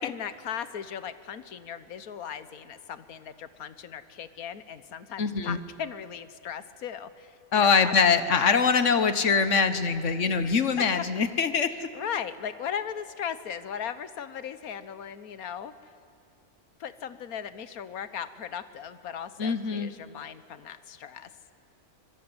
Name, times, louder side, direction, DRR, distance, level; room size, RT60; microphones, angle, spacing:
voice 1, 0.0-8.7 10.4-11.0 11.7-15.7 16.8-21.3, left 8 dB, 80° left, 13 dB, 1.5 m, -38 dB
voice 2, 5.2-5.6 7.5-11.9 19.4-19.9, left 5 dB, 55° left, 11 dB, 1.5 m, -23 dB
26.0 x 21.0 x 9.7 m, 2.3 s
omnidirectional pair, 1.5 m